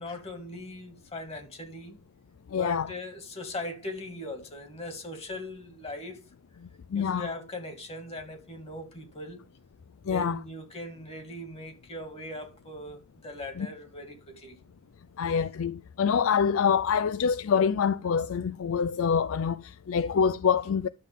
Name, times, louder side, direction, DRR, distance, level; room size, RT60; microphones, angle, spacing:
voice 1, 0.0-2.0 2.6-6.2 6.9-9.4 10.1-14.6, left 1 dB, 30° left, 2.1 m, -39 dB
voice 2, 2.5-2.9 6.9-7.3 10.1-10.4 13.6-13.7 15.2-20.9, left 6 dB, 70° left, 0.4 m, -26 dB
11.5 x 7.4 x 3.6 m
head